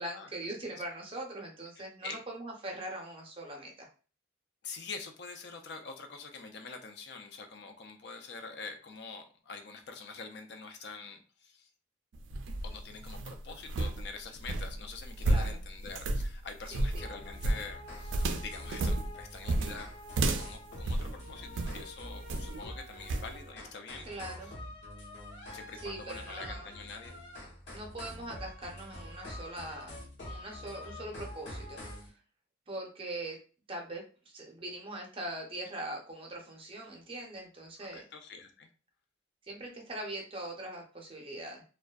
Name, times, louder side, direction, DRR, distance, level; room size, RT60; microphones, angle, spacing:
voice 1, 0.0-3.9 15.2-15.6 16.7-17.0 24.0-24.5 25.8-26.7 27.7-29.9 30.2-32.1 32.7-33.4 33.7-38.0 39.4-41.6, right 1 dB, 30° right, 0 dB, 0.5 m, -42 dB
voice 2, 1.8-2.2 4.6-11.7 12.6-19.9 20.4-24.1 24.4-24.5 25.5-27.1 37.8-38.7, left 4 dB, 60° left, 6 dB, 0.4 m, -45 dB
sound 1, 12.1-21.8 22.3-22.6 23.1-23.3, right 2 dB, 85° right, 0.3 m, -32 dB
sound 2, 16.9-32.1, left 1 dB, 75° left, 0.9 m, -46 dB
2.5 x 2.2 x 2.3 m, 0.37 s
head